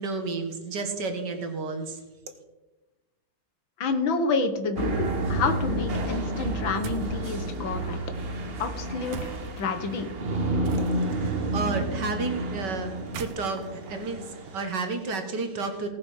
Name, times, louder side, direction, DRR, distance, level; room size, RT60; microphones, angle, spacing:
voice 1, 0.0-2.0 10.7-15.9, right 3 dB, 55° right, 6 dB, 2.0 m, -32 dB
voice 2, 3.8-8.0 8.6-10.1, left 4 dB, 70° left, 7 dB, 1.9 m, -29 dB
sound 1, 4.8-14.6, right 2 dB, 40° right, 1.0 m, -30 dB
sound 2, 6.8-7.2 9.1-9.6 10.6-11.3 12.9-14.9, right 8 dB, 85° right, 1.7 m, -40 dB
17.5 x 6.0 x 6.4 m, 1.1 s
omnidirectional pair, 2.3 m